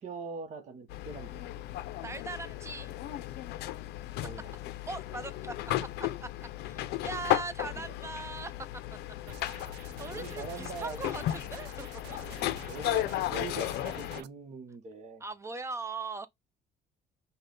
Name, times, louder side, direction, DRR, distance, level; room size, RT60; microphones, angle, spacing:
voice 1, 0.0-1.6 4.2-4.5 6.8-6.9 7.7-7.8 10.1-11.0 12.6-15.2, right 4 dB, 45° right, 0.9 m, -42 dB
sound 1, 0.9-14.2, left 14 dB, 80° left, 0.5 m, -35 dB
voice 2, 2.0-2.9 4.9-5.5 6.0-6.3 6.6-8.5 9.5-11.9 15.2-16.3, right 3 dB, 15° right, 0.5 m, -40 dB
sound 2, 9.3-14.3, right 12 dB, 80° right, 0.5 m, -50 dB
5.4 x 2.2 x 3.8 m
cardioid pair, 110°, 17 cm